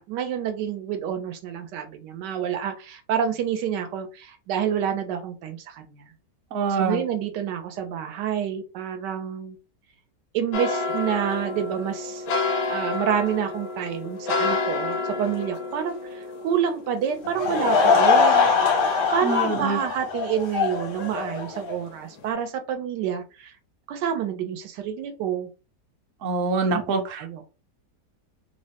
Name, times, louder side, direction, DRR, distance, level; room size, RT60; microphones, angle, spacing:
voice 1, 0.0-6.0 6.8-9.6 10.3-12.2 12.7-18.5 19.1-23.5 23.9-25.5 26.7-27.5, right 8 dB, 90° right, 7 dB, 1.2 m, -28 dB
voice 2, 6.5-7.0 19.2-19.8 26.2-27.2, right 4 dB, 60° right, 2 dB, 0.9 m, -25 dB
sound 1, 10.5-19.7 20.1-21.2 21.5-21.8 22.2-22.3, left 3 dB, 85° left, 1.3 m, -31 dB
Laughter / Crowd, 17.2-21.8, left 5 dB, 55° left, 0.6 m, -22 dB
3.4 x 2.1 x 2.7 m, 0.31 s
omnidirectional pair, 1.8 m